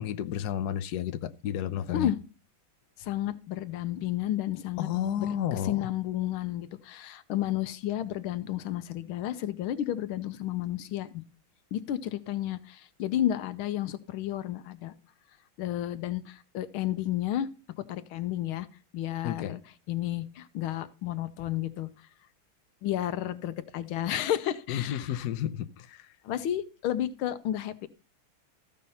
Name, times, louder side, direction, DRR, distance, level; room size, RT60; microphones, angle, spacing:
voice 1, 0.0-2.1 4.8-5.9 19.2-19.6 24.7-26.1, left 10 dB, 65° left, 1.1 m, -32 dB
voice 2, 3.0-4.9 5.2-11.2 11.7-14.9 15.6-17.5 17.8-18.7 18.9-19.6 19.9-21.9 22.8-25.2 26.2-27.9, left 12 dB, 85° left, 1.6 m, -32 dB
14.5 x 5.3 x 5.5 m
omnidirectional pair, 2.2 m